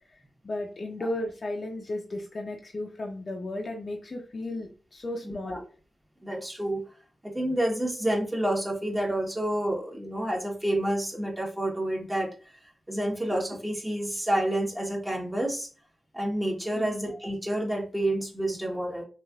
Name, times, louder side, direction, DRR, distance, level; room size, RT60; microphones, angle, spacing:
voice 1, 0.4-5.6 16.7-16.9, left 1 dB, 50° left, 0 dB, 0.6 m, -34 dB
voice 2, 5.2-5.6 6.2-6.8 7.2-12.3 12.9-15.7 16.1-19.0, right 1 dB, 15° right, -2 dB, 1.1 m, -29 dB
3.1 x 2.5 x 2.4 m, 0.36 s
cardioid pair, 45°, 0 cm